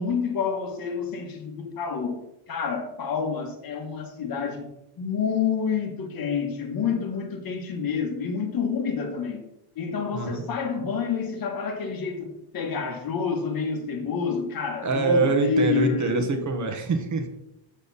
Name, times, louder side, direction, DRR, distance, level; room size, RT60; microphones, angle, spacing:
voice 1, 0.0-2.2 2.5-4.7 5.0-9.4 9.7-16.4, left 6 dB, 45° left, 1.4 m, -28 dB
voice 2, 14.8-17.3, right 3 dB, 40° right, 1.2 m, -24 dB
7.3 x 7.0 x 4.1 m
cardioid pair, 135°, 47 cm